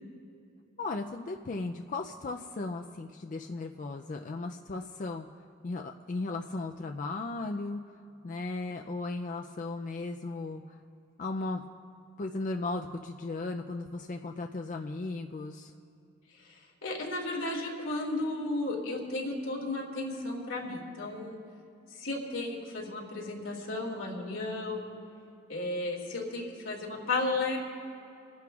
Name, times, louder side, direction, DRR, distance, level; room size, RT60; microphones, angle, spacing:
voice 1, 0.8-5.3 5.6-7.8 8.2-10.8 11.2-11.6 12.2-15.7, left 3 dB, 40° left, 4 dB, 0.4 m, -36 dB
voice 2, 16.3-21.4 21.9-24.9 25.5-27.6, left 2 dB, 85° left, -1 dB, 2.2 m, -34 dB
28.5 x 10.5 x 2.4 m, 2.7 s
head